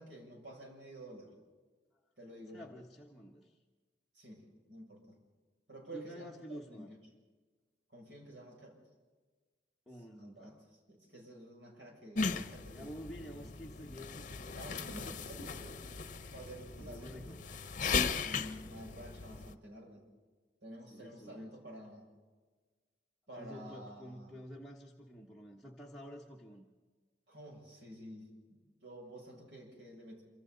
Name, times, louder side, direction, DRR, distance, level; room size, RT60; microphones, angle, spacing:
voice 1, 0.0-1.3 2.2-2.7 4.1-5.0 5.7-6.9 7.9-8.8 10.1-12.9 13.3-13.5 14.5-15.8 16.3-17.3 18.2-20.1 20.6-22.1 23.3-24.3 27.3-30.2, right 1 dB, 85° right, 0 dB, 7.2 m, -50 dB
voice 2, 2.5-3.6 5.9-6.9 9.9-10.6 12.7-15.2 16.8-17.4 19.0-19.1 20.9-21.5 23.4-26.7, equal, ahead, -4 dB, 1.5 m, -50 dB
sound 1, 12.2-19.5, left 5 dB, 45° left, 0.9 m, -38 dB
27.0 x 26.0 x 4.1 m, 1.4 s
head